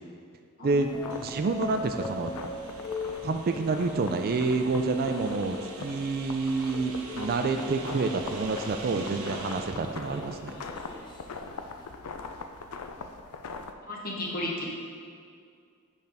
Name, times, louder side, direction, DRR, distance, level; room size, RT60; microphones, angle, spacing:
sound 1, 0.7-13.7, left 4 dB, 85° left, 0.5 m, -42 dB
sound 2, 0.7-11.9, left 2 dB, 20° left, 0.8 m, -43 dB
sound 3, 1.1-9.9, right 4 dB, 65° right, 0.8 m, -45 dB
voice 1, 1.2-2.3 3.2-10.6, right 3 dB, 45° right, 6 dB, 0.4 m, -28 dB
voice 2, 13.9-14.7, left 1 dB, 40° left, -3 dB, 1.2 m, -33 dB
7.9 x 5.3 x 3.5 m, 2.2 s
head